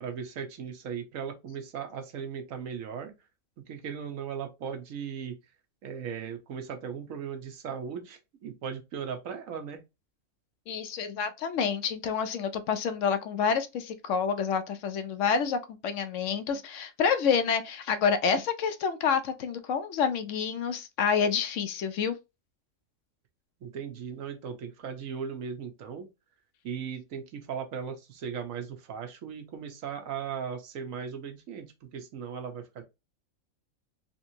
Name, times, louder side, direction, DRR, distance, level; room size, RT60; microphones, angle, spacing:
voice 1, 0.0-3.1 3.7-5.4 5.8-9.8 23.6-26.1 26.6-32.8, right 7 dB, 75° right, 1.2 m, -37 dB
voice 2, 10.7-22.1, left 6 dB, 70° left, 0.9 m, -28 dB
3.5 x 2.9 x 2.7 m
omnidirectional pair, 1.4 m